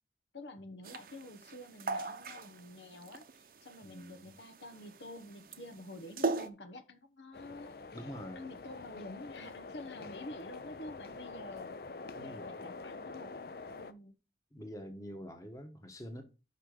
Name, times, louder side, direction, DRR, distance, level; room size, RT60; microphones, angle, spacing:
voice 1, 0.3-11.8 12.1-13.4 13.7-14.1, left 2 dB, 85° left, 1.1 m, -49 dB
sound 1, 0.8-6.5, right 3 dB, 55° right, 0.7 m, -38 dB
voice 2, 3.8-4.3 7.9-8.6 12.1-12.5 14.5-16.2, equal, 20° left, 1.2 m, -46 dB
sound 2, 7.3-13.9, left 3 dB, 55° left, 0.5 m, -46 dB
5.8 x 5.4 x 6.5 m
head